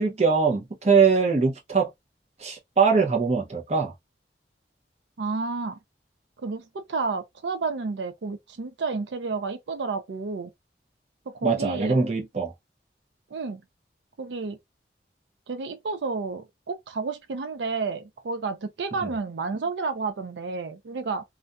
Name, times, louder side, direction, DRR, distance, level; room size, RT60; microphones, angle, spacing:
voice 1, 0.0-1.9 2.4-3.9 11.4-12.5 19.0-19.1, right 5 dB, 35° right, 0.7 m, -22 dB
voice 2, 5.2-5.8 6.4-10.5 11.3-12.0 13.3-13.6 14.2-14.6 15.5-21.2, right 4 dB, 80° right, 0.5 m, -31 dB
2.4 x 2.2 x 2.4 m
head